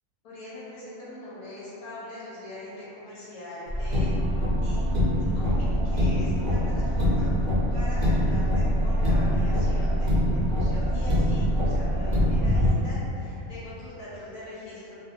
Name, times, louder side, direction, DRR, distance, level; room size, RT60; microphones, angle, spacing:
voice 1, 0.2-4.1 4.6-7.3 7.7-14.9, left 1 dB, 90° left, -11 dB, 1.2 m, -42 dB
Car, 3.7-12.7, equal, 45° right, 0.6 m, -24 dB
2.6 x 2.3 x 2.6 m, 2.9 s
omnidirectional pair, 1.5 m